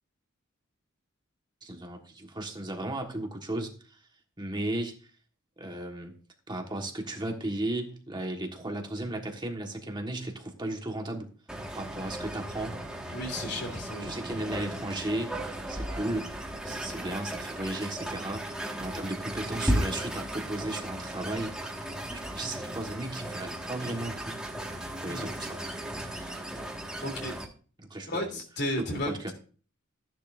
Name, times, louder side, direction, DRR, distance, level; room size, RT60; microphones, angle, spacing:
voice 1, 1.6-4.0 4.4-5.0 5.6-6.1 6.5-11.3 11.7-12.8 14.0-15.4 15.7-16.3 16.6-21.5 22.1-24.4 24.8-25.6 27.8-28.4 28.8-29.3, right 1 dB, 20° right, 2 dB, 1.5 m, -35 dB
sound 1, 11.5-27.5, right 1 dB, 5° right, 1.8 m, -36 dB
voice 2, 13.1-14.1 25.1-25.3 26.1-26.4 27.0-27.3 28.1-29.1, left 1 dB, 55° left, 2 dB, 3.2 m, -34 dB
14.5 x 10.5 x 2.6 m, 0.39 s
head